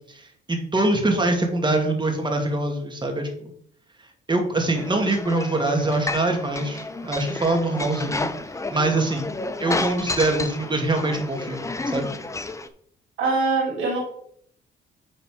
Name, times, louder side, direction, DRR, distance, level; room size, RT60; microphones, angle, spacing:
voice 1, 0.1-3.5 4.3-8.3 8.7-9.3 9.6-12.1, right 2 dB, 25° right, 3 dB, 2.2 m, -24 dB
sound 1, 4.7-12.7, left 3 dB, 15° left, 0.7 m, -31 dB
voice 2, 13.2-14.0, right 3 dB, 90° right, -4 dB, 3.6 m, -23 dB
9.5 x 4.0 x 4.9 m, 0.65 s
cardioid pair, 90°, 20 cm